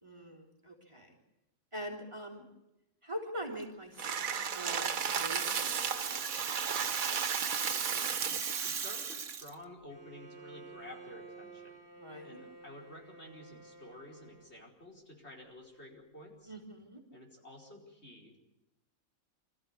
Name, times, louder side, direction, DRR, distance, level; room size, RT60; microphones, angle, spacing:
voice 1, 0.0-1.1 1.7-2.5 3.0-6.5 12.0-12.4 16.5-17.0, equal, 20° right, 0 dB, 3.6 m, -44 dB
sound 1, 4.0-8.6, right 7 dB, 90° right, 1.6 m, -34 dB
Rattle (instrument), 4.3-9.5, right 6 dB, 65° right, 1.5 m, -38 dB
voice 2, 7.6-8.2 8.5-11.8 12.2-16.5 17.1-18.4, left 1 dB, 50° left, 0 dB, 5.1 m, -51 dB
Bowed string instrument, 9.9-14.6, right 3 dB, 40° right, 2.7 m, -52 dB
26.0 x 14.5 x 8.5 m, 0.95 s
omnidirectional pair, 1.4 m